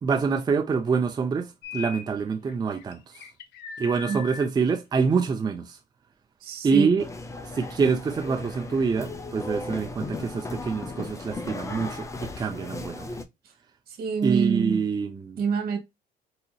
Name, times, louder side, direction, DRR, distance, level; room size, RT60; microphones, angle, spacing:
voice 1, 0.0-3.0 3.8-5.8 6.6-7.0 7.5-13.1 14.2-15.4, right 5 dB, 25° right, 0.5 m, -26 dB
sound 1, 1.6-2.1 2.5-4.5, left 8 dB, 80° left, 0.7 m, -39 dB
voice 2, 6.4-6.9 14.0-14.8 15.4-15.8, right 6 dB, 65° right, 1.3 m, -26 dB
sound 2, 7.0-13.2, left 2 dB, 20° left, 0.6 m, -36 dB
3.9 x 2.8 x 2.3 m
cardioid pair, 110°, 17 cm